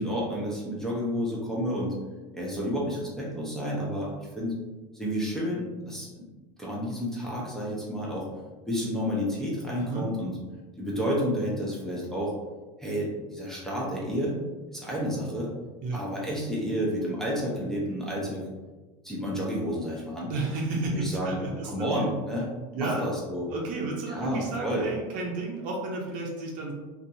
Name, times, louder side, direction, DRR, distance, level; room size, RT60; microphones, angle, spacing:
voice 1, 0.0-1.9 2.3-4.6 4.9-6.3 6.6-8.3 8.7-10.3 10.8-12.3 12.8-14.3 14.7-15.5 15.9-18.5 19.0-20.3 20.9-21.4 21.6-22.5 22.7-23.5 24.1-24.9, equal, ahead, -6 dB, 0.6 m, -30 dB
voice 2, 9.7-10.1 15.8-16.0 20.3-22.1 22.7-23.1 23.5-26.7, right 2 dB, 50° right, -1 dB, 0.7 m, -32 dB
2.6 x 2.4 x 2.7 m, 1.2 s
supercardioid pair, 120°, 17 cm